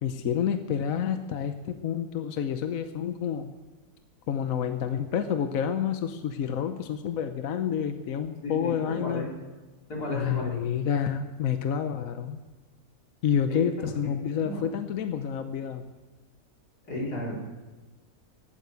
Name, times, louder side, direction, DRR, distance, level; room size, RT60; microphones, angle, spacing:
voice 1, 0.0-3.5 4.3-9.3 10.1-12.4 13.2-15.9, left 8 dB, 65° left, 8 dB, 1.2 m, -29 dB
voice 2, 8.4-9.3 9.9-10.6 13.5-13.9 14.3-14.6 16.8-17.4, left 1 dB, 90° left, -2 dB, 4.2 m, -34 dB
15.0 x 9.5 x 8.2 m, 1.2 s
omnidirectional pair, 1.6 m